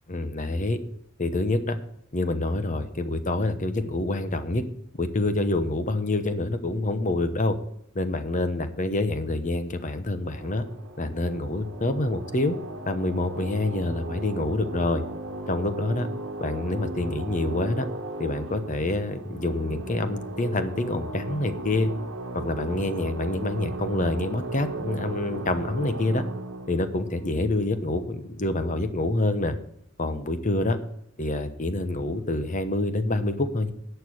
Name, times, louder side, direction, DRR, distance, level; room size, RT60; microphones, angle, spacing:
voice 1, 0.1-0.8 1.2-1.8 2.1-4.6 5.0-7.5 7.9-10.6 11.0-12.6 12.9-15.0 15.5-16.1 16.4-17.9 18.2-21.9 22.3-26.2 26.7-29.6 30.0-30.8 31.2-33.7, left 2 dB, 40° left, 10 dB, 0.9 m, -27 dB
sound 1, 10.2-28.4, right 2 dB, 75° right, 1.2 m, -36 dB
11.0 x 6.9 x 6.2 m, 0.75 s
head